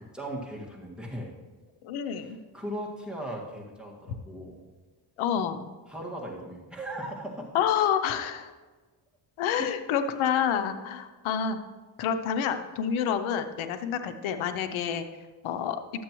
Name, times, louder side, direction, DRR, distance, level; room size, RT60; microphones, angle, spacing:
voice 1, 0.1-1.3 2.1-4.6 5.9-7.5 9.6-9.7, right 1 dB, ahead, -3 dB, 1.8 m, -38 dB
voice 2, 1.8-2.4 4.1-4.2 5.2-5.7 7.5-8.5 9.4-11.6 12.0-15.0 15.4-15.8, left 8 dB, 90° left, 9 dB, 0.7 m, -28 dB
11.5 x 7.6 x 3.0 m, 1.3 s
cardioid pair, 85°, 47 cm